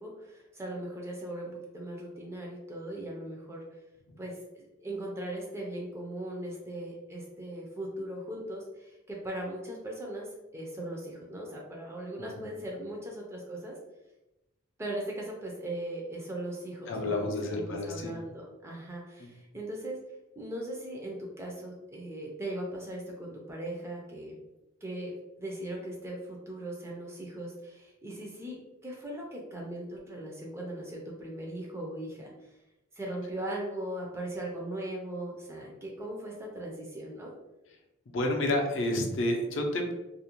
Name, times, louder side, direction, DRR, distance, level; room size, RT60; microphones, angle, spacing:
voice 1, 0.0-3.6 4.2-13.8 14.8-20.0 20.4-24.4 24.8-25.1 25.4-28.6 28.8-32.3 32.9-37.3, right 1 dB, 10° right, -2 dB, 0.3 m, -39 dB
voice 2, 12.2-12.5 16.9-18.1 19.2-19.3 38.1-39.9, left 1 dB, 60° left, 2 dB, 0.4 m, -30 dB
2.4 x 2.0 x 2.8 m, 0.98 s
head